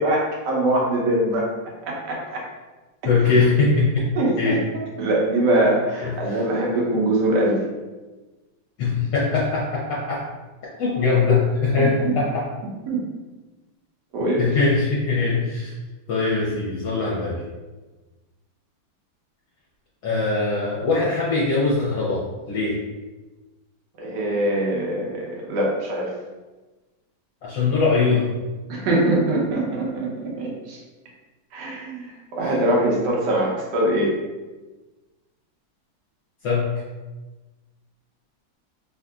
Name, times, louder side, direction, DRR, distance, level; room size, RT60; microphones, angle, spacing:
voice 1, 0.0-1.5 1.9-2.4 4.1-4.6 5.0-7.6 11.8-12.1 12.9-13.1 14.1-14.5 24.0-26.1 28.7-30.8 31.5-34.1, right 1 dB, 65° right, -2 dB, 1.2 m, -23 dB
voice 2, 3.0-4.1 4.4-4.6 6.2-6.4 8.8-10.2 10.8-12.4 14.4-15.7 16.1-17.4 20.0-22.2 22.5-22.7 27.4-28.3 32.4-32.5 36.4-36.7, left 4 dB, 70° left, -8 dB, 1.3 m, -21 dB
3.6 x 2.6 x 2.3 m, 1.2 s
omnidirectional pair, 2.2 m